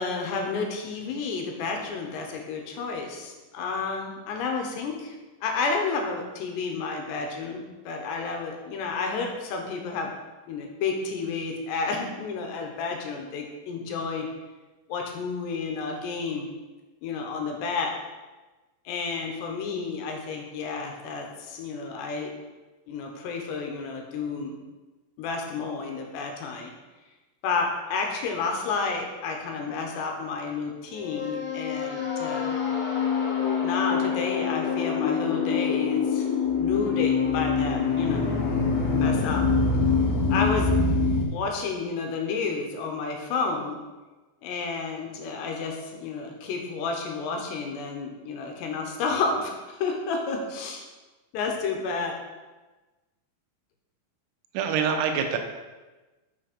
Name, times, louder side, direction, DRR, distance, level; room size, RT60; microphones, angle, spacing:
voice 1, 0.0-5.2 5.4-10.1 10.5-14.3 14.9-16.5 17.0-17.9 18.9-22.3 22.9-24.6 25.2-26.7 27.4-32.6 33.6-36.3 36.6-38.3 38.9-39.5 40.3-40.8 41.3-43.8 44.4-50.8 51.3-52.2, left 4 dB, 75° left, 2 dB, 2.9 m, -31 dB
sound 1, 30.9-41.2, left 5 dB, 55° left, 3.1 m, -25 dB
voice 2, 54.5-55.4, right 7 dB, 85° right, 5 dB, 3.2 m, -25 dB
6.8 x 6.2 x 5.2 m, 1.2 s
omnidirectional pair, 5.5 m